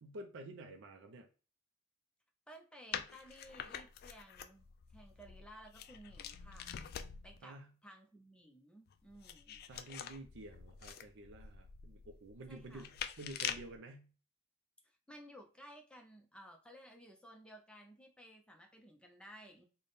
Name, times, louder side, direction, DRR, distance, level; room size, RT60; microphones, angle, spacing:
voice 1, 0.0-1.3 7.4-7.7 9.7-14.1, right 2 dB, 60° right, 4 dB, 0.4 m, -50 dB
voice 2, 2.5-6.7 7.2-9.7 12.5-12.9 14.8-19.6, equal, 5° left, 2 dB, 0.6 m, -56 dB
sound 1, 2.9-7.4 8.9-13.8, left 8 dB, 50° left, 0.3 m, -46 dB
3.3 x 2.2 x 4.0 m, 0.37 s
head